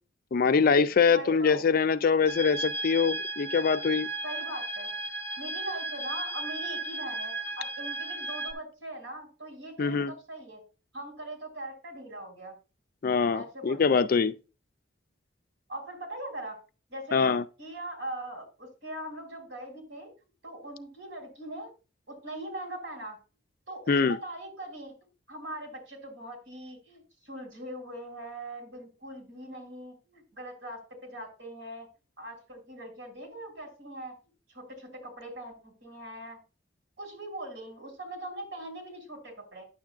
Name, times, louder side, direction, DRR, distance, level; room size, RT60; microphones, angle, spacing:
voice 1, 0.3-4.1 9.8-10.1 13.0-14.3 17.1-17.4 23.9-24.2, left 5 dB, 45° left, 0.4 m, -24 dB
voice 2, 1.1-1.7 4.2-4.9 5.4-10.6 10.9-12.6 13.3-14.0 15.7-16.6 16.9-20.1 20.4-21.7 22.1-23.2 23.7-24.9 25.3-31.9 32.2-34.1 34.5-36.4 37.0-39.6, right 1 dB, 65° right, 3.4 m, -41 dB
sound 1, 2.3-8.5, right 2 dB, 10° left, 0.7 m, -35 dB
9.5 x 7.2 x 2.4 m
head